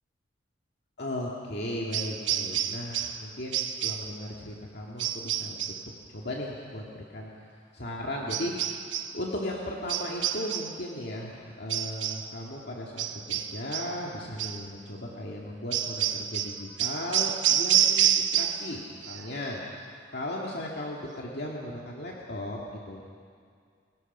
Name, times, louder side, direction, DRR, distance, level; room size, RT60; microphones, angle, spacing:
voice 1, 1.0-5.8 6.1-8.5 9.1-19.6 20.1-23.1, left 1 dB, 60° left, -3 dB, 2.2 m, -36 dB
sound 1, 1.9-3.2 3.5-4.1 5.0-5.9 8.3-9.2 9.9-10.8 11.7-12.3 13.0-14.0 14.4-14.6 15.7-18.7 19.0-19.5, right 10 dB, 75° right, 1.0 m, -28 dB
30.0 x 18.0 x 5.6 m, 2.2 s
head